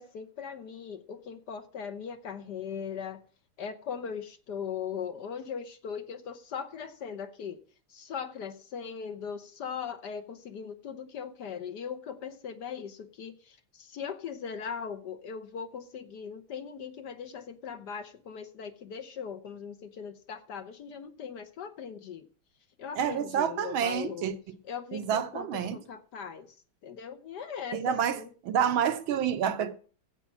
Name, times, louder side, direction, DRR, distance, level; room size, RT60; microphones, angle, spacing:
voice 1, 0.0-3.2 3.6-7.6 7.9-22.3 22.8-24.3 24.6-26.5 26.8-28.3, left 7 dB, 60° left, 1.3 m, -39 dB
voice 2, 23.0-24.3 24.9-25.8 27.7-28.2 28.5-29.8, right 8 dB, 75° right, 1.7 m, -28 dB
15.5 x 5.3 x 6.1 m
omnidirectional pair, 2.3 m